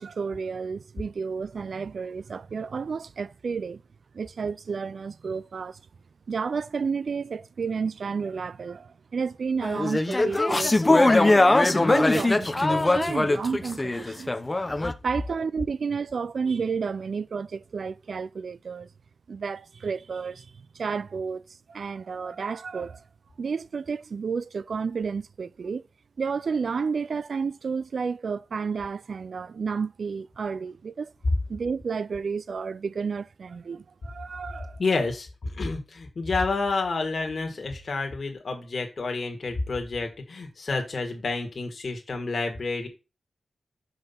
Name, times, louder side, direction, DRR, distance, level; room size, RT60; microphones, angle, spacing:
voice 1, 0.0-3.8 4.1-5.8 6.3-14.3 15.0-18.9 19.3-21.4 21.7-23.0 23.4-25.9 26.2-31.1 31.5-34.8, right 5 dB, 70° right, 0.4 m, -31 dB
sound 1, 9.6-14.9, left 2 dB, 25° left, 0.6 m, -21 dB
voice 2, 34.8-42.9, left 3 dB, 55° left, 1.8 m, -29 dB
5.6 x 5.5 x 5.8 m
wide cardioid pair, 100°, 0 cm